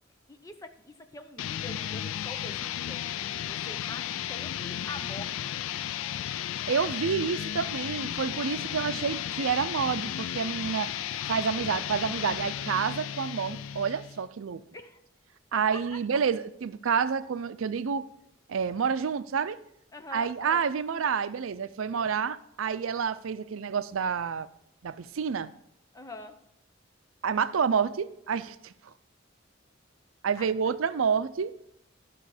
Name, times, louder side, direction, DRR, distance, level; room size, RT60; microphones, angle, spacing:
voice 1, 0.3-5.5 14.7-15.0 15.7-16.0 19.9-20.6 22.0-22.1 25.9-26.4 30.4-30.5, left 2 dB, 15° left, 0.7 m, -45 dB
sound 1, 1.4-14.2, left 10 dB, 85° left, 0.3 m, -34 dB
voice 2, 6.7-10.9 11.3-14.6 15.5-18.1 18.5-19.6 20.1-24.5 24.8-25.5 27.2-28.9 30.2-31.5, right 6 dB, 90° right, 0.5 m, -29 dB
12.5 x 6.2 x 4.9 m
head